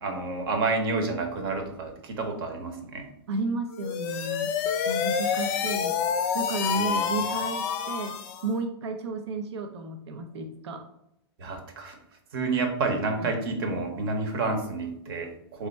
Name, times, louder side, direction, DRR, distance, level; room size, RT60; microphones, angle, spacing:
voice 1, 0.0-3.0 6.7-7.1 11.4-12.0 12.3-15.7, right 3 dB, 60° right, 4 dB, 1.0 m, -29 dB
voice 2, 3.3-4.5 4.9-6.0 6.3-10.8 13.2-13.3, right 3 dB, 85° right, 5 dB, 0.5 m, -32 dB
sound 1, 3.7-8.5, left 7 dB, 40° left, 0.4 m, -28 dB
3.4 x 2.2 x 4.0 m, 0.79 s
hypercardioid pair, 135°, 14 cm